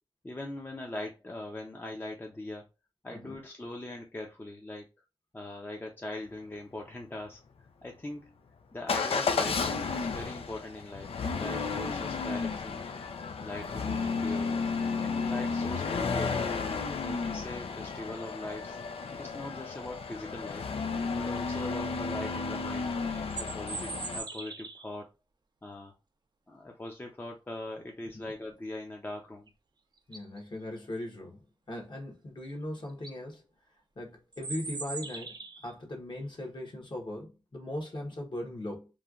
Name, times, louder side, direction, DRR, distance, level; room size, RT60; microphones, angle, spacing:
voice 1, 0.2-2.7 3.0-4.9 5.3-7.4 7.8-8.3 8.7-12.9 13.4-14.6 15.0-16.6 17.0-18.8 19.1-20.7 21.1-23.0 23.4-25.1 25.6-25.9 26.5-29.5, left 2 dB, 20° left, 0.6 m, -41 dB
Motor vehicle (road) / Engine starting / Accelerating revving vroom, 8.9-24.2, left 4 dB, 85° left, 0.4 m, -33 dB
sound 1, 23.1-25.0 29.5-29.6 30.0-30.4 32.4-32.5 32.9-33.2 34.3-35.7, right 3 dB, 50° right, 0.4 m, -40 dB
voice 2, 30.1-31.4 31.7-33.4 34.0-35.4 35.6-38.9, left 1 dB, 55° left, 1.1 m, -39 dB
3.1 x 2.3 x 2.4 m
wide cardioid pair, 75°, 10 cm